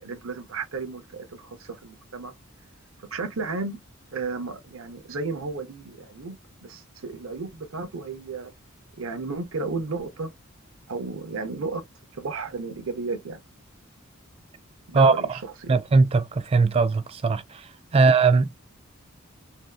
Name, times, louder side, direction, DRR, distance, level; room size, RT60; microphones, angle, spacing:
voice 1, 0.0-2.3 3.0-3.8 4.1-8.5 8.9-10.3 10.9-11.8 12.1-13.4 14.9-15.7, right 3 dB, 80° right, 0.7 m, -33 dB
voice 2, 15.7-17.4 17.9-18.6, right 4 dB, 30° right, 0.3 m, -19 dB
2.7 x 2.3 x 2.2 m
head